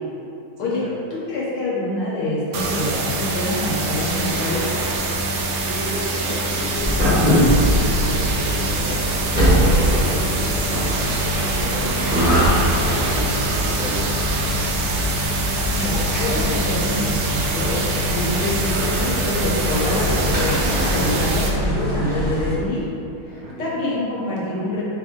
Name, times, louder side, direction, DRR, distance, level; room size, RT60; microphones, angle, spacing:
voice 1, 0.6-4.6 15.7-22.9 23.3-24.8, left 1 dB, 85° left, -6 dB, 1.8 m, -26 dB
sound 1, 2.5-21.5, right 2 dB, 85° right, 1.5 m, -25 dB
voice 2, 5.6-9.0 9.6-14.2 23.2-23.8, equal, 65° right, -6 dB, 1.5 m, -33 dB
sound 2, 6.8-22.5, equal, 5° right, 1.0 m, -22 dB
4.8 x 2.7 x 3.6 m, 2.7 s
omnidirectional pair, 2.3 m